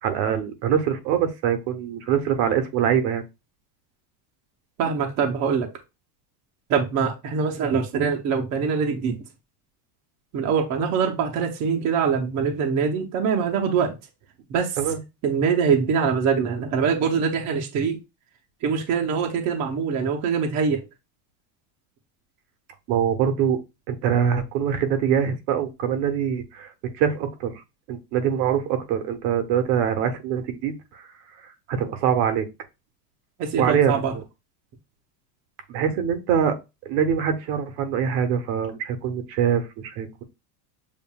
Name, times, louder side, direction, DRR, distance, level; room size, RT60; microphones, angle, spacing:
voice 1, 0.0-3.2 14.8-15.0 22.9-23.6 23.9-26.7 27.0-27.6 27.9-31.1 31.7-32.5 33.6-34.2 35.7-36.6 36.8-40.2, right 8 dB, 65° right, 0.9 m, -24 dB
voice 2, 4.8-5.7 6.7-9.2 10.3-13.9 14.5-14.7 15.2-18.0 18.6-20.8 33.4-34.1, right 6 dB, 35° right, 0.8 m, -23 dB
7.2 x 2.5 x 2.3 m
cardioid pair, 155°, 49 cm